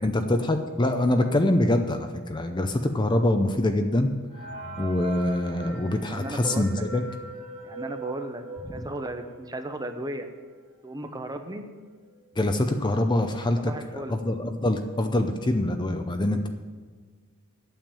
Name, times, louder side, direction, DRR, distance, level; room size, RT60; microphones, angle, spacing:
voice 1, 0.0-4.1 4.8-7.0 12.4-16.5, left 1 dB, 20° left, 6 dB, 0.6 m, -24 dB
sound 1, 4.3-9.7 10.2-10.3 10.5-10.6 11.4-11.5 11.8-12.2, right 2 dB, 40° right, 2.4 m, -40 dB
voice 2, 6.0-6.8 7.6-8.4 8.7-10.3 10.8-11.6 13.6-14.3, right 1 dB, 15° right, 7 dB, 0.8 m, -35 dB
8.9 x 7.3 x 8.7 m, 1.5 s
head